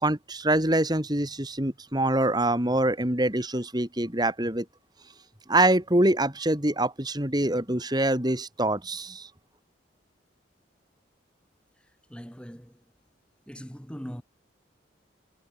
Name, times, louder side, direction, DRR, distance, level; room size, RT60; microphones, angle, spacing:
voice 1, 0.0-4.7 5.5-9.3, right 1 dB, 20° right, 3.6 m, -25 dB
voice 2, 12.1-12.8 13.5-14.2, equal, 5° left, 7.8 m, -40 dB
head